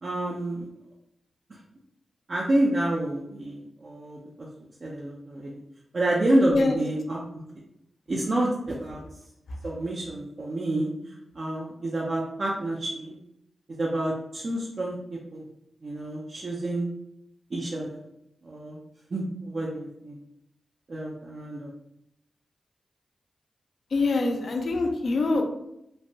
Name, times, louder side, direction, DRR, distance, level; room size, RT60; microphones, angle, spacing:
voice 1, 0.0-0.7 2.3-4.5 4.8-5.6 5.9-7.4 8.1-9.0 9.6-10.9 11.3-13.1 13.8-15.4 15.8-16.9 17.5-18.0 18.4-18.8 19.1-20.2 20.9-21.7, right 1 dB, 55° right, -4 dB, 0.5 m, -28 dB
voice 2, 6.4-6.8 23.9-25.4, left 3 dB, 70° left, 3 dB, 0.5 m, -25 dB
3.1 x 2.1 x 2.6 m, 0.81 s
cardioid pair, 60°, 0 cm